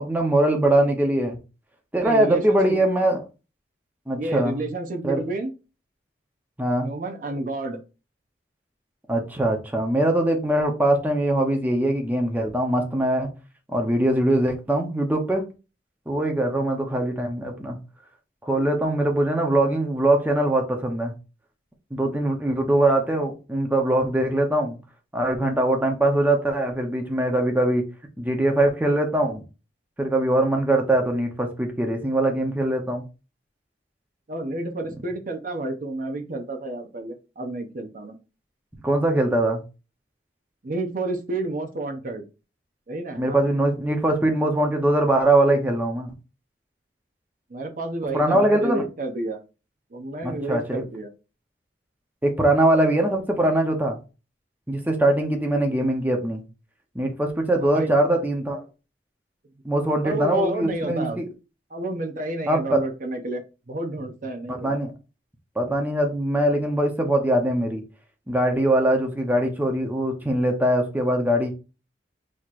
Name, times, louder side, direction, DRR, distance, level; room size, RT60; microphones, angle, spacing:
voice 1, 0.0-1.4 1.9-3.2 4.1-4.6 5.0-5.2 6.6-6.9 9.1-13.3 13.7-15.4 16.1-17.8 18.4-21.1 21.9-24.8 25.1-27.8 28.2-29.4 30.0-33.0 38.8-39.6 43.2-46.1 48.1-48.8 50.2-50.8 52.2-54.0 54.7-56.4 56.9-58.6 59.6-61.3 62.5-62.8 64.5-64.9 65.6-67.8 68.3-71.5, right 1 dB, 10° right, 2 dB, 0.7 m, -22 dB
voice 2, 2.0-2.8 4.2-5.5 6.8-7.8 34.3-38.1 40.6-42.2 42.9-43.5 47.5-49.4 49.9-51.1 57.6-57.9 60.0-61.2 61.7-63.4 63.7-64.8, right 2 dB, 50° right, 5 dB, 0.7 m, -30 dB
6.4 x 2.9 x 2.5 m, 0.31 s
head